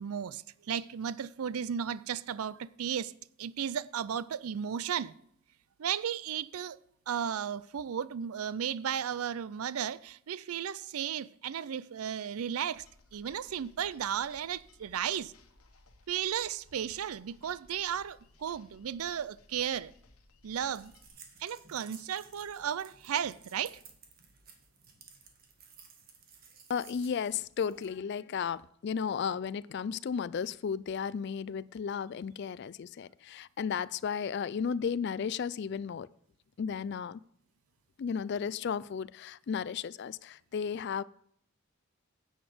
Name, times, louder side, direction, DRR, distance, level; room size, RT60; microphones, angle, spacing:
voice 1, 0.0-5.1 5.8-6.8 7.1-12.9 13.1-15.3 16.1-19.9 20.4-20.9 21.4-23.8, right 8 dB, 85° right, 0.4 m, -34 dB
sound 1, 12.7-21.1, left 3 dB, 85° left, 1.3 m, -61 dB
sound 2, 20.7-28.0, right 5 dB, 45° right, 1.7 m, -56 dB
voice 2, 26.7-36.1 36.6-37.2 38.0-41.0, left 6 dB, 50° left, 0.3 m, -34 dB
9.9 x 7.9 x 5.0 m
head